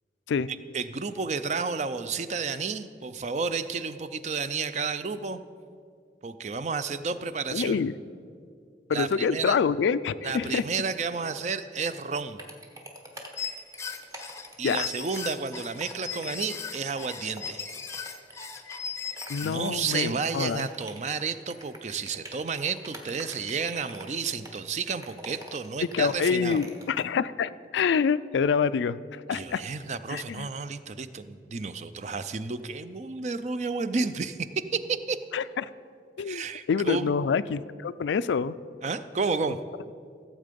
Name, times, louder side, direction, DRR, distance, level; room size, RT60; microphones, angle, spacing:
voice 1, 0.7-5.4 6.2-7.8 8.9-9.6 10.2-12.4 14.6-17.6 19.4-26.6 29.3-35.2 36.2-37.1 38.8-39.6, right 5 dB, 40° right, 12 dB, 0.4 m, -31 dB
voice 2, 7.5-7.9 8.9-10.6 14.6-14.9 19.3-20.7 25.9-29.6 30.1-30.5 35.3-35.7 36.2-38.5, left 6 dB, 85° left, 16 dB, 0.3 m, -26 dB
sound 1, 12.4-27.0, equal, 20° right, 1.0 m, -45 dB
sound 2, 13.4-19.7, left 6 dB, 15° left, 0.6 m, -37 dB
15.5 x 7.5 x 5.2 m, 2.2 s
head